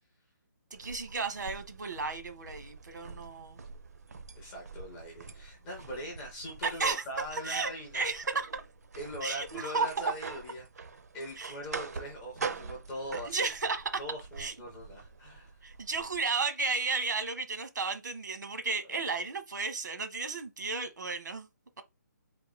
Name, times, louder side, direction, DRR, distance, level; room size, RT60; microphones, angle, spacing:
sound 1, 0.7-16.2, right 4 dB, 55° right, 0.6 m, -45 dB
voice 1, 0.7-3.6 6.6-7.0 7.4-8.5 9.2-9.9 11.4-11.5 13.3-13.9 14.4-14.5 15.6-21.5, right 4 dB, 75° right, 1.1 m, -33 dB
voice 2, 4.3-8.1 9.0-10.8 11.1-13.5 14.0-15.6, equal, 5° left, 0.4 m, -41 dB
3.6 x 2.3 x 4.2 m
hypercardioid pair, 180°, 10 cm